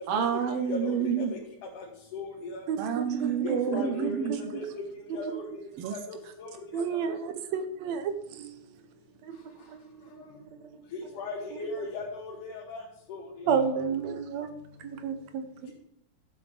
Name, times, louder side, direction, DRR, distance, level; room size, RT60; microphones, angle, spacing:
voice 1, 0.1-1.3 2.8-4.4 5.8-5.9, right 7 dB, 85° right, 1.3 m, -29 dB
voice 2, 2.1-2.6 3.4-4.1 4.5-4.6 5.1-5.2 11.2-12.3 12.7-12.8 13.1-13.2 13.5-13.6, left 3 dB, 80° left, 2.9 m, -36 dB
voice 3, 2.7-4.6 5.1-5.4 6.7-8.8 9.2-9.4 9.7-10.8 11.5-11.9 13.5-15.7, right 7 dB, 70° right, 1.9 m, -33 dB
12.5 x 8.2 x 3.3 m
omnidirectional pair, 3.5 m